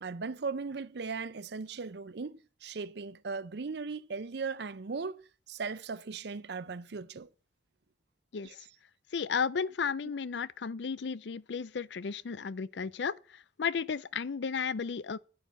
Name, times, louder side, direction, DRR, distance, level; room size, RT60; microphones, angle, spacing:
voice 1, 0.0-7.3 8.4-8.6, right 4 dB, 65° right, 0.6 m, -38 dB
voice 2, 8.3-8.6 9.1-15.2, left 6 dB, 70° left, 0.5 m, -34 dB
11.0 x 5.8 x 8.1 m
head